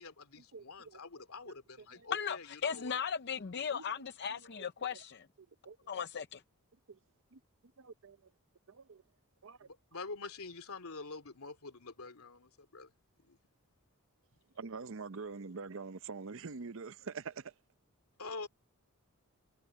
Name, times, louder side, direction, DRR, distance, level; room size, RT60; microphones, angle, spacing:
voice 1, 0.0-3.0 9.6-12.9 13.3-13.4 18.2-18.5, left 3 dB, 80° left, 2.7 m, -46 dB
voice 2, 0.5-1.0 1.8-2.1 3.7-3.8 4.4-4.5 4.9-5.0 5.6-5.8 6.9-7.0 7.3-7.4 7.8-8.3 8.7-9.0 9.4-9.7 14.6-17.5, right 4 dB, 60° right, 0.7 m, -45 dB
voice 3, 2.1-5.3 5.9-6.4, left 7 dB, 50° left, 0.6 m, -37 dB
head